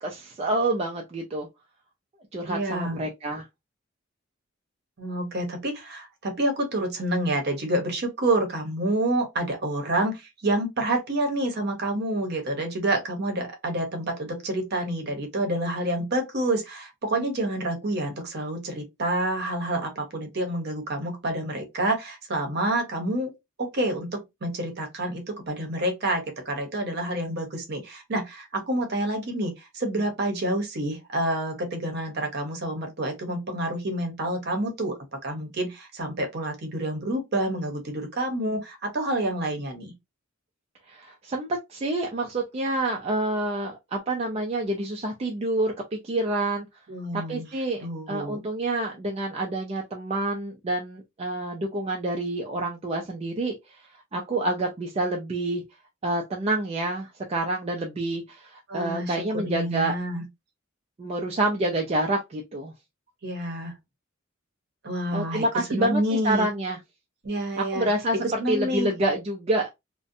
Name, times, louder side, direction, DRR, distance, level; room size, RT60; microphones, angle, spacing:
voice 1, 0.0-1.5 2.3-3.5 40.9-46.7 47.1-55.6 56.0-59.9 61.0-62.7 65.1-66.8 67.6-69.7, right 1 dB, 30° right, 0.3 m, -28 dB
voice 2, 2.5-3.0 5.0-23.3 23.6-39.9 46.9-47.5 47.8-48.4 58.7-60.2 63.2-63.7 64.8-65.4 65.7-66.5 67.2-67.9 68.2-68.9, right 1 dB, 50° right, 0.7 m, -28 dB
2.5 x 2.1 x 2.5 m
head